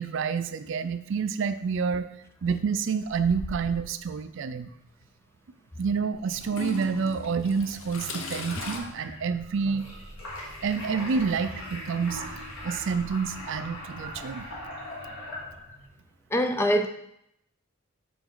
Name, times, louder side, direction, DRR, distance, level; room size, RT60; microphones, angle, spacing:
voice 1, 0.0-2.1 2.4-4.7 5.8-9.9 10.6-12.2 12.6-14.5, right 5 dB, 60° right, 12 dB, 0.4 m, -28 dB
Toilet flush / Trickle dribble, 3.1-4.0 5.0-5.1 6.4-8.8, left 3 dB, 65° left, 0.8 m, -38 dB
sound 1, 6.1-15.9, left 1 dB, 80° left, 2.0 m, -41 dB
voice 2, 16.3-16.9, equal, 10° left, 5 dB, 0.4 m, -23 dB
5.9 x 5.1 x 3.9 m, 0.76 s
head